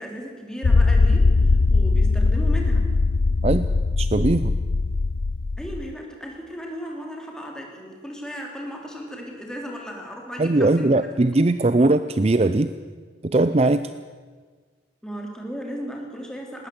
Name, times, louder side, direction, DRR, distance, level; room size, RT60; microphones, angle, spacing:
voice 1, 0.0-2.9 5.6-11.1 15.0-16.7, equal, 5° left, 0 dB, 3.4 m, -35 dB
sound 1, 0.6-5.9, left 3 dB, 55° left, 0.5 m, -20 dB
voice 2, 4.0-4.5 10.4-12.7 13.2-13.9, right 2 dB, 30° right, 12 dB, 0.5 m, -20 dB
20.0 x 18.5 x 8.0 m, 1.6 s
head